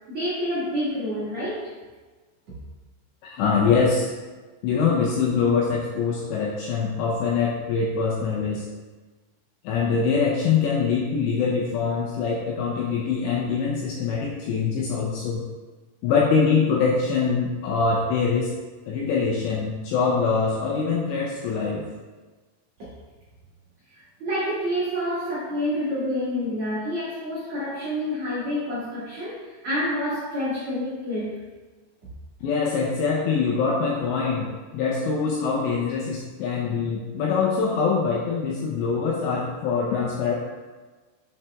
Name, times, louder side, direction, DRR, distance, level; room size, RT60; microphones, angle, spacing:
voice 1, 0.1-1.7 23.9-31.4, equal, 75° right, -9 dB, 1.6 m, -28 dB
voice 2, 3.2-4.1 4.6-8.7 9.6-15.4 16.0-18.5 18.9-21.9 32.4-40.4, left 5 dB, 80° left, -2 dB, 2.6 m, -24 dB
7.2 x 5.7 x 3.4 m, 1.3 s
omnidirectional pair, 5.8 m